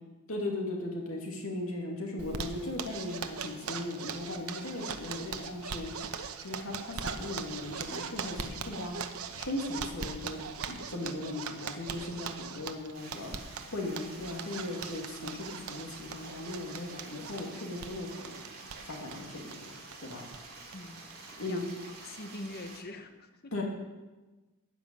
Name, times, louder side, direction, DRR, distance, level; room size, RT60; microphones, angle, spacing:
voice 1, 0.3-5.9 6.4-9.0 9.4-10.4 10.7-18.4 18.9-19.7 20.0-20.2 21.4-21.7 23.5-23.6, left 2 dB, 70° left, 0 dB, 2.5 m, -38 dB
Zipper (clothing), 2.2-20.4 20.7-20.8 21.1-21.2 21.5-22.0, right 6 dB, 75° right, 0.9 m, -41 dB
Stream, 12.9-22.8, right 3 dB, 40° right, 2.8 m, -49 dB
voice 2, 20.7-21.7 22.0-23.5, left 2 dB, 45° left, 7 dB, 1.0 m, -44 dB
12.5 x 5.9 x 9.0 m, 1.2 s
head